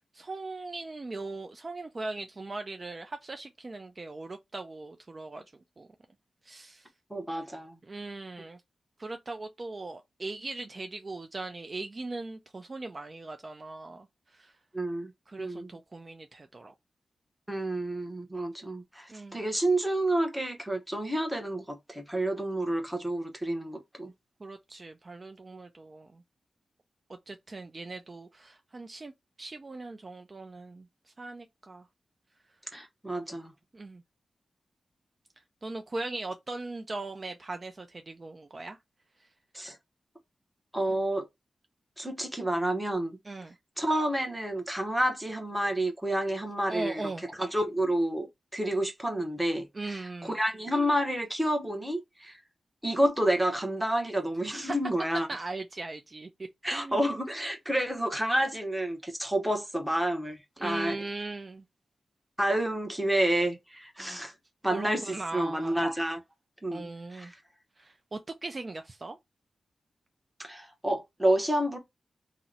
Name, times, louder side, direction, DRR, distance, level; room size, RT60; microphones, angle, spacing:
voice 1, 0.1-5.4 5.8-5.9 6.4-6.9 7.8-8.6 9.0-14.1 14.3-14.5 15.3-16.7 19.1-19.5 24.4-26.2 27.3-29.1 29.4-30.9 31.2-31.9 33.7-34.0 35.6-38.8 43.2-43.6 46.7-47.2 49.7-50.3 54.5-54.8 55.3-56.3 56.7-57.0 60.6-61.6 64.7-65.8 66.7-67.3 67.8-69.2, right 3 dB, 35° right, 0.3 m, -39 dB
voice 2, 7.1-7.8 14.7-15.1 15.4-15.7 17.5-24.1 32.7-33.5 39.5-39.8 40.7-41.2 42.0-43.2 43.8-47.0 47.4-48.3 48.5-52.4 52.8-55.3 56.6-61.0 62.4-64.3 64.6-66.2 66.6-67.3 70.4-71.8, right 1 dB, 5° right, 0.8 m, -29 dB
2.8 x 2.0 x 3.7 m
wide cardioid pair, 100°, 0 cm